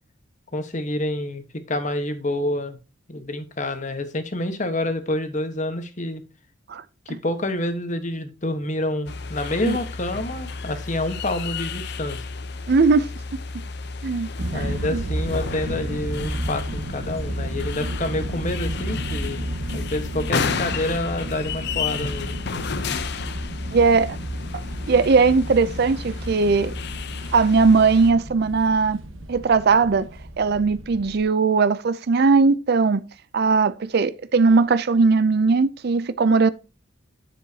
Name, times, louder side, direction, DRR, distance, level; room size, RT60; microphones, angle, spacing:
voice 1, 0.5-2.8 3.1-6.2 7.1-12.3 14.5-19.5 19.7-22.4, left 1 dB, 40° left, 1.3 m, -28 dB
sound 1, 9.1-28.1, left 4 dB, 55° left, 0.7 m, -32 dB
voice 2, 12.7-13.4 14.0-15.0 23.7-24.2 24.9-26.7 27.3-29.0 29.3-30.1 30.4-33.0 33.3-36.5, right 4 dB, 50° right, 0.5 m, -19 dB
sound 2, 14.4-31.2, right 1 dB, 80° right, 1.3 m, -33 dB
9.7 x 7.4 x 2.8 m
head